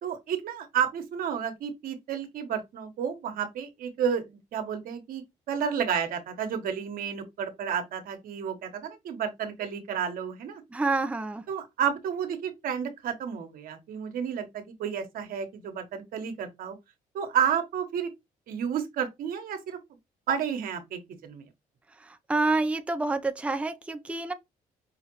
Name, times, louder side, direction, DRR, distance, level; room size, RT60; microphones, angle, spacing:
voice 1, 0.0-10.6 11.5-16.8 17.1-18.1 18.5-19.8 20.3-21.5, right 8 dB, 75° right, 1.4 m, -31 dB
voice 2, 10.7-11.4 22.0-24.3, right 3 dB, 10° right, 0.6 m, -28 dB
5.7 x 2.5 x 3.0 m
cardioid pair, 90°, 15 cm